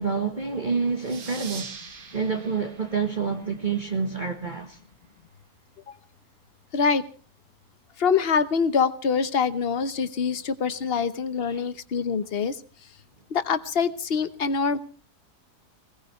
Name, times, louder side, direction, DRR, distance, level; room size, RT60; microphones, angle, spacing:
voice 1, 0.0-1.7 2.1-4.8 11.5-11.6, right 5 dB, 30° right, 1.5 m, -28 dB
sound 1, 1.0-4.2, right 5 dB, 65° right, 2.0 m, -43 dB
voice 2, 6.7-7.0 8.0-12.6 13.3-14.8, left 5 dB, 40° left, 1.1 m, -25 dB
21.5 x 18.5 x 3.2 m
omnidirectional pair, 1.7 m